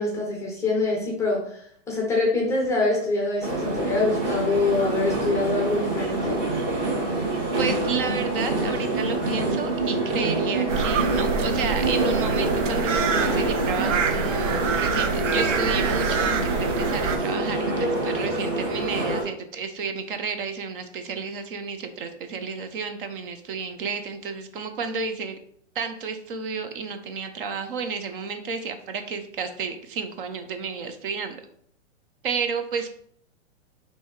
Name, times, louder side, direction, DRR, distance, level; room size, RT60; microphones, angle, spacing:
voice 1, 0.0-6.4, left 3 dB, 10° left, -1 dB, 0.5 m, -25 dB
sound 1, 3.4-19.2, right 2 dB, 30° right, 1.9 m, -26 dB
voice 2, 7.6-25.4 25.7-31.4 32.2-32.9, right 5 dB, 45° right, 7 dB, 0.6 m, -31 dB
sound 2, 10.7-17.2, right 6 dB, 90° right, 0.6 m, -27 dB
5.4 x 2.7 x 3.1 m, 0.64 s
hypercardioid pair, 145°, 37 cm